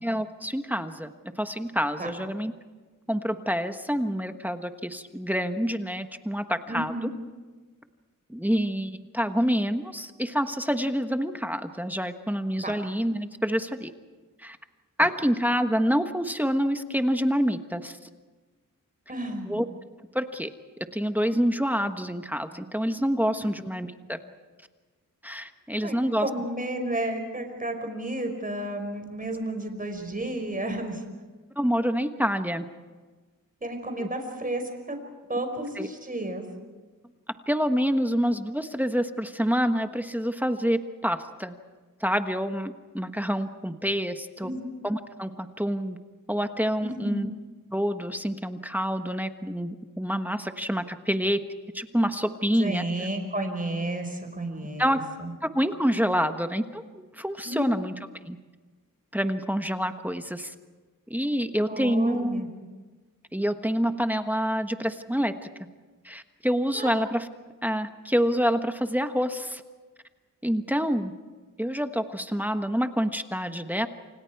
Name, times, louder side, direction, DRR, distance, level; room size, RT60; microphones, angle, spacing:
voice 1, 0.0-2.5 3.1-6.9 8.3-13.9 14.4-14.6 15.0-18.0 19.5-19.6 20.1-20.5 20.9-24.2 25.2-26.3 31.6-32.7 34.0-34.1 35.8-35.9 37.5-41.5 42.0-44.5 44.8-46.0 46.3-47.3 47.7-51.4 51.7-52.8 54.8-55.0 55.4-57.9 58.2-58.4 59.1-60.5 61.1-62.4 63.3-65.5 66.0-67.3 67.6-69.6 70.4-71.1 71.6-73.9, equal, 5° right, 7 dB, 1.3 m, -27 dB
voice 2, 6.7-7.1 12.6-12.7 19.1-19.6 25.8-31.0 33.6-35.0 35.3-36.4 44.4-44.7 46.8-47.2 52.6-55.3 57.4-57.8 61.7-62.5 66.7-66.9, right 1 dB, 25° right, 5 dB, 5.1 m, -32 dB
29.0 x 27.0 x 4.8 m, 1.3 s
wide cardioid pair, 100°, 34 cm